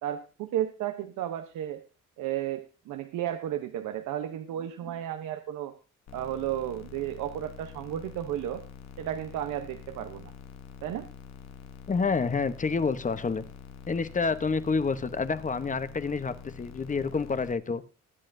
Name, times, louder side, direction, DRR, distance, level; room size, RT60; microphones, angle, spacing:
voice 1, 0.0-1.8 2.2-5.7 6.1-8.6 9.0-10.3 10.8-11.1, right 11 dB, 90° right, 7 dB, 0.9 m, -33 dB
sound 1, 6.1-17.5, left 7 dB, 65° left, 1.0 m, -46 dB
voice 2, 11.9-13.5 13.9-17.8, left 4 dB, 25° left, 13 dB, 0.8 m, -28 dB
21.0 x 8.8 x 2.6 m, 0.33 s
cardioid pair, 90°, 30 cm